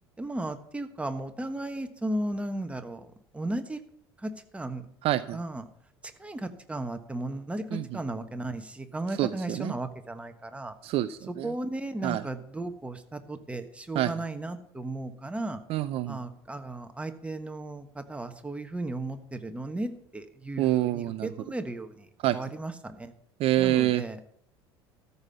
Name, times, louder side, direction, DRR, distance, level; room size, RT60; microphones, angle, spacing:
voice 1, 0.2-3.8 4.2-4.8 5.3-5.6 6.0-10.7 11.3-15.6 16.1-22.1 22.3-23.1 23.6-24.2, right 2 dB, 10° right, 7 dB, 1.3 m, -35 dB
voice 2, 5.0-5.4 7.7-7.9 9.2-9.7 10.8-11.5 12.0-12.2 13.9-14.1 15.7-16.2 20.6-21.3 22.2-22.4 23.4-24.0, right 14 dB, 50° right, 14 dB, 0.5 m, -26 dB
13.5 x 5.6 x 8.1 m, 0.69 s
figure-of-eight pair, 65°, 13 cm